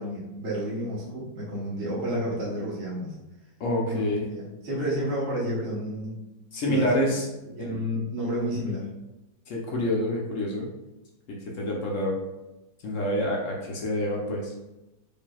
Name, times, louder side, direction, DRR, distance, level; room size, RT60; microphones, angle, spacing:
voice 1, 0.0-3.1 3.9-6.2 6.5-7.1 7.5-8.9, equal, 45° right, -7 dB, 1.2 m, -31 dB
voice 2, 3.6-4.2 6.5-7.3 7.6-7.7 9.5-10.7 11.3-12.2 12.8-14.5, left 1 dB, 70° left, -2 dB, 0.7 m, -27 dB
5.3 x 2.6 x 2.3 m, 0.99 s
omnidirectional pair, 2.1 m